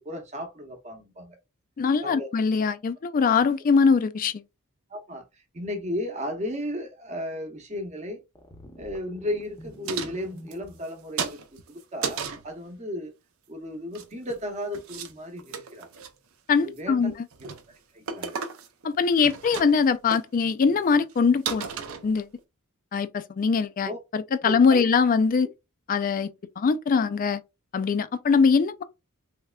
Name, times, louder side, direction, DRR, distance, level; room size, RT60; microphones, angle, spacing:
voice 1, 0.0-1.4 2.0-2.3 4.9-8.2 8.8-11.4 11.7-13.1 13.5-15.9 16.6-17.1 17.4-18.4 23.8-24.0 24.4-24.9, left 1 dB, 30° right, 0.9 m, -35 dB
voice 2, 1.8-4.4 16.5-17.1 18.8-21.7 22.0-22.3 22.9-25.5 25.9-26.3 26.6-27.4 27.7-28.8, left 5 dB, 40° left, 0.3 m, -22 dB
sound 1, 8.3-10.8, equal, 15° left, 0.7 m, -47 dB
sound 2, 9.8-10.9 11.2-12.5 13.7-14.4 14.7-15.1 15.4-16.1 16.6-16.9 17.3-17.6 18.1-18.9 19.1-19.9 20.1-20.2 20.8-20.9 21.1-21.2 21.5-22.4, right 6 dB, 70° right, 0.6 m, -34 dB
3.4 x 3.2 x 2.3 m
head